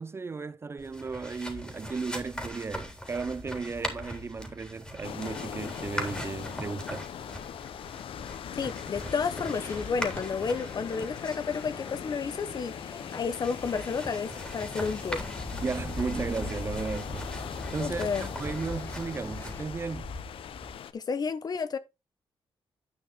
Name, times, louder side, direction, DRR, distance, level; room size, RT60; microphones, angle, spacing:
voice 1, 0.0-7.1 15.5-17.3 17.7-20.1, right 4 dB, 25° right, 0.4 m, -35 dB
sound 1, 0.8-20.7, left 1 dB, 10° left, 3.5 m, -40 dB
sound 2, 5.0-20.9, left 9 dB, 75° left, 0.8 m, -41 dB
voice 2, 8.6-15.2 17.8-18.3 20.9-21.8, left 5 dB, 45° left, 1.1 m, -31 dB
sound 3, 9.5-19.7, left 3 dB, 30° left, 1.9 m, -47 dB
10.5 x 5.6 x 4.5 m
cardioid pair, 115°, 9 cm